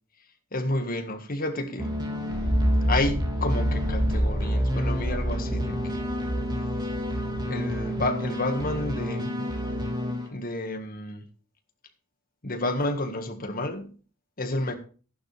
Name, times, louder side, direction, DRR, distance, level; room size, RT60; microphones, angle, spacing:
voice 1, 0.5-1.9 2.9-6.1 7.5-9.5 10.3-11.3 12.4-13.9 14.4-14.8, left 2 dB, 45° left, 1.8 m, -30 dB
sound 1, 1.8-10.3, equal, 20° right, 3.2 m, -31 dB
sound 2, 2.4-8.2, equal, 15° left, 3.7 m, -28 dB
14.0 x 11.5 x 3.4 m
head